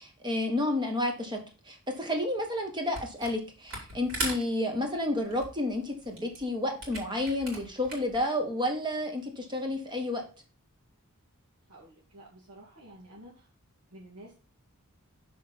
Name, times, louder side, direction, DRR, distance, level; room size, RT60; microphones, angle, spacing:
voice 1, 0.0-1.4 1.6-10.2, left 1 dB, 20° right, 3 dB, 1.6 m, -31 dB
Camera, 2.9-3.4 3.7-8.2, right 2 dB, 60° right, 4.1 m, -38 dB
voice 2, 11.7-13.5 13.9-14.6, right 1 dB, 80° right, -6 dB, 2.3 m, -51 dB
6.8 x 5.1 x 5.4 m, 0.34 s
head